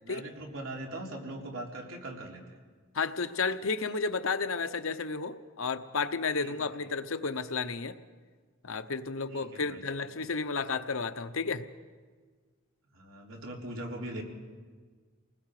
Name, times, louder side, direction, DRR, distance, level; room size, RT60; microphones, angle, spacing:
voice 1, 0.0-2.6 6.4-6.9 9.3-9.8 10.1-10.3 12.9-14.2, right 1 dB, 75° right, -1 dB, 3.8 m, -41 dB
voice 2, 2.9-8.0 8.6-11.7, left 4 dB, 85° left, 10 dB, 1.0 m, -32 dB
29.0 x 20.0 x 5.0 m, 1.5 s
head